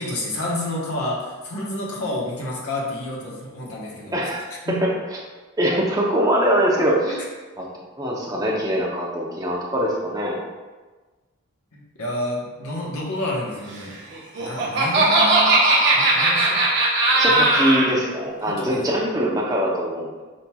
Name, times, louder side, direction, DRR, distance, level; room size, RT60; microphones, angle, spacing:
voice 1, 0.0-4.2 4.6-4.9 7.0-7.1 11.7-13.9 14.4-15.6 15.9-16.6 17.2-17.4 18.4-18.8, left 1 dB, 85° left, -3 dB, 1.1 m, -29 dB
voice 2, 4.1-4.4 4.7-4.8 5.6-7.2 7.6-7.7 8.0-10.4 17.2-20.2, equal, 15° right, -3 dB, 0.7 m, -22 dB
Laughter, 14.1-17.9, right 2 dB, 50° right, 0.8 m, -18 dB
5.3 x 4.3 x 2.3 m, 1.3 s
head